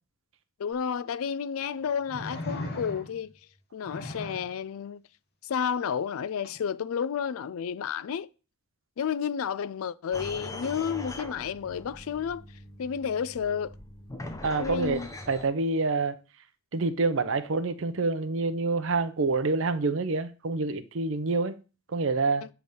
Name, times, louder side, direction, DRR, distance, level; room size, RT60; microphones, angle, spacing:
voice 1, 0.6-3.3 3.7-5.0 5.4-8.3 9.0-12.4 12.8-13.7 14.6-15.1, left 7 dB, 70° left, 0.4 m, -31 dB
sound 1, 0.7-0.8 2.1-3.3 3.8-4.5 6.4-6.6, left 1 dB, 45° left, 1.1 m, -37 dB
sound 2, 10.1-15.4, left 1 dB, 15° left, 0.7 m, -41 dB
voice 2, 14.4-16.2 16.7-21.6 21.9-22.5, right 3 dB, 60° right, 0.6 m, -27 dB
7.7 x 3.5 x 5.4 m
head